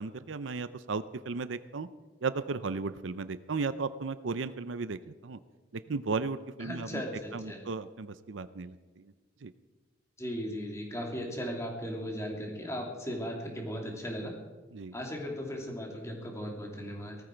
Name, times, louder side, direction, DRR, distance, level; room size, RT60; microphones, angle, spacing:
voice 1, 0.0-1.9 2.2-5.4 5.7-7.0 7.3-9.1 9.4-9.5 14.7-14.9, right 4 dB, 75° right, 14 dB, 0.6 m, -35 dB
voice 2, 6.6-7.6 10.2-14.3 14.9-17.2, equal, 15° left, 0 dB, 2.7 m, -37 dB
18.5 x 14.0 x 4.6 m, 1.2 s
head